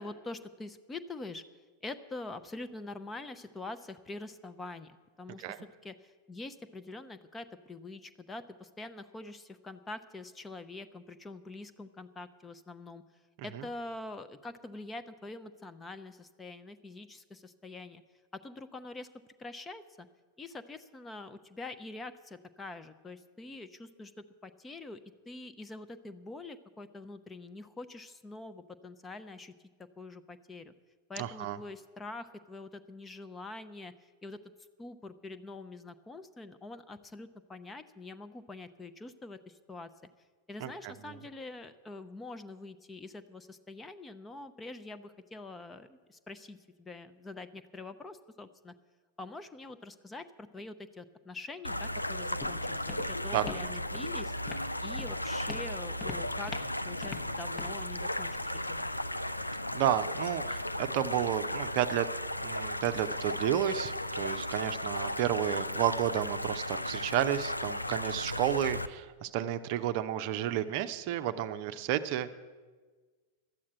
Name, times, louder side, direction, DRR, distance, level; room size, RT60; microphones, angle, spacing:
voice 1, 0.0-1.4 1.8-13.0 13.4-18.0 18.3-19.1 19.4-20.1 20.4-25.0 25.3-29.5 30.0-30.7 31.1-33.9 34.2-34.4 34.8-39.9 40.5-48.7 49.2-54.3 54.8-58.9, left 2 dB, 15° left, 10 dB, 0.7 m, -45 dB
voice 2, 31.2-31.6 40.6-41.2 53.3-53.7 59.7-62.1 62.4-72.4, right 11 dB, 45° right, 10 dB, 0.6 m, -31 dB
sound 1, 51.6-68.9, left 1 dB, 85° left, 0.4 m, -35 dB
Walk footsteps, 51.7-59.7, left 4 dB, 35° left, 1.0 m, -46 dB
12.0 x 8.6 x 9.1 m, 1.4 s
figure-of-eight pair, 90°, 0 cm